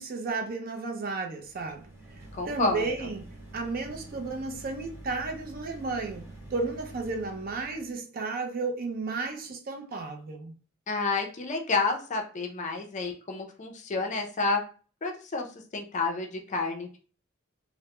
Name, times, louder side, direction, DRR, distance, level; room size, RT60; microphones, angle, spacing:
voice 1, 0.0-1.9 2.2-3.3 3.5-6.2 6.5-10.5, right 3 dB, 45° right, 0.4 m, -33 dB
sound 1, 1.3-7.9, right 1 dB, 15° right, 0.9 m, -47 dB
voice 2, 2.3-2.8 10.9-14.6 15.0-15.5 15.7-17.0, left 3 dB, 35° left, 0.4 m, -29 dB
2.2 x 2.0 x 2.8 m
head